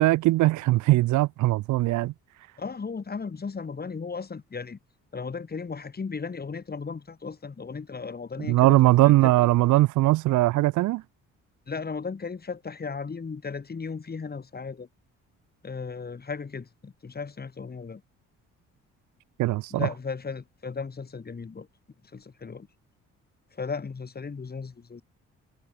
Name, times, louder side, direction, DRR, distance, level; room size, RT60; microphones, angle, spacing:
voice 1, 0.0-2.1 8.5-11.0 19.4-19.9, right 18 dB, 75° right, 0.4 m, -20 dB
voice 2, 2.6-4.8 5.1-9.5 11.7-14.9 15.6-18.0 19.7-21.7 22.1-22.7 23.5-25.0, left 5 dB, 30° left, 3.4 m, -36 dB
cardioid pair, 90°, 30 cm